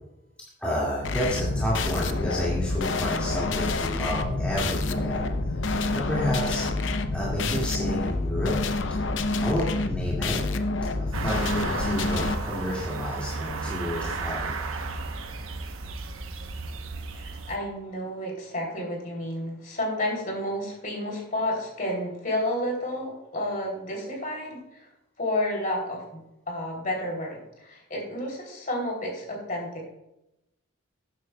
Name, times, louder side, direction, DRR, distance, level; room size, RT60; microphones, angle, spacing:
voice 1, 0.6-6.6 7.1-8.6 8.9-10.4 11.0-14.6, left 1 dB, 5° left, -8 dB, 2.1 m, -31 dB
sound 1, 1.0-12.4, left 2 dB, 65° left, 0.7 m, -28 dB
sound 2, 11.1-17.6, right 3 dB, 90° right, 1.0 m, -33 dB
voice 2, 17.1-24.9 25.2-26.2 26.5-29.9, left 1 dB, 40° left, -1 dB, 3.2 m, -31 dB
12.5 x 9.5 x 2.3 m, 0.88 s
head